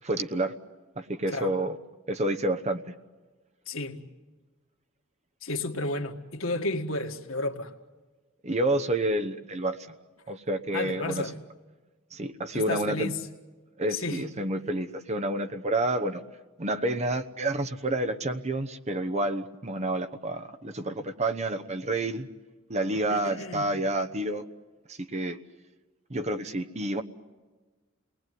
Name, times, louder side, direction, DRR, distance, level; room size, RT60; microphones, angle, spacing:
voice 1, 0.0-0.5 1.0-1.8 2.1-2.9 8.4-9.8 10.3-11.3 12.1-13.1 13.8-16.2 16.6-22.3 22.7-24.4 24.9-25.4 26.1-27.0, right 1 dB, 35° right, 1.0 m, -29 dB
voice 2, 3.7-4.0 5.4-7.7 10.7-11.3 12.5-13.2 13.9-14.2 23.1-23.7, left 2 dB, 90° left, 1.9 m, -32 dB
28.5 x 20.0 x 9.4 m
head